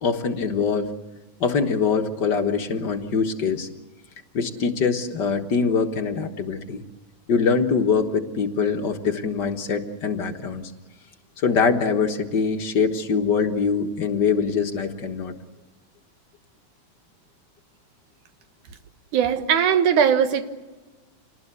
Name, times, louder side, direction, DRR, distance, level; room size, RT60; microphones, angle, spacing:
voice 1, 0.0-0.9 1.4-3.7 4.3-6.8 7.3-10.7 11.4-15.3, left 5 dB, 50° left, 5 dB, 1.3 m, -23 dB
voice 2, 19.1-20.4, right 8 dB, 75° right, 8 dB, 2.8 m, -19 dB
27.0 x 19.5 x 8.2 m, 1.3 s
omnidirectional pair, 3.6 m